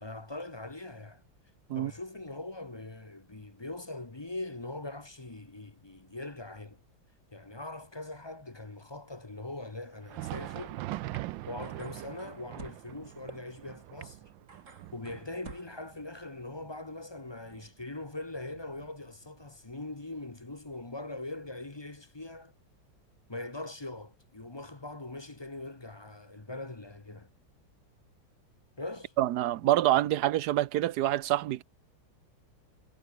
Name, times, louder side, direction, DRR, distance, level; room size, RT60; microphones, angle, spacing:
voice 1, 0.0-1.2 1.7-6.8 7.3-10.8 11.5-14.3 14.9-22.5 23.3-27.3 28.8-29.1, left 2 dB, 20° left, 0.9 m, -41 dB
Thunder, 9.9-19.4 19.7-19.9 20.6-20.8 21.7-21.8, right 16 dB, 80° right, 1.3 m, -43 dB
sound 1, 11.1-11.2 11.6-12.8 13.3-13.4 14.0-14.1 14.5-15.8, right 4 dB, 40° right, 2.8 m, -48 dB
voice 2, 29.2-31.6, right 13 dB, 65° right, 1.2 m, -26 dB
omnidirectional pair, 2.0 m